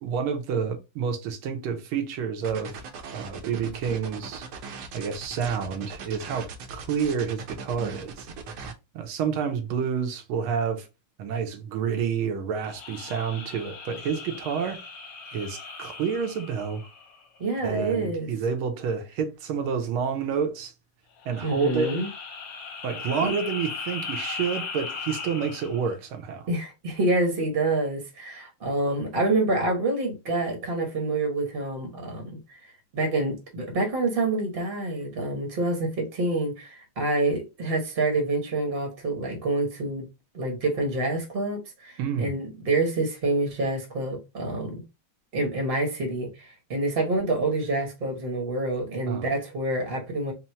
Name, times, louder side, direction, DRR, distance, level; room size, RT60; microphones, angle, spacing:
voice 1, 0.0-2.8 3.1-4.5 4.9-8.3 8.9-10.9 11.2-14.8 15.3-16.9 17.6-20.7 21.2-21.9 22.8-26.4 42.0-42.3 49.1-49.3, right 6 dB, 85° right, 1.7 m, -29 dB
sound 1, 2.4-8.7, right 5 dB, 70° right, 1.1 m, -39 dB
sound 2, 12.6-17.4 21.2-25.9, left 4 dB, 70° left, 1.3 m, -38 dB
voice 2, 17.4-18.3 21.4-22.1 23.2-23.3 26.5-40.1 40.3-44.8 45.3-50.3, right 2 dB, 45° right, 0.8 m, -27 dB
4.3 x 2.1 x 4.2 m
omnidirectional pair, 2.3 m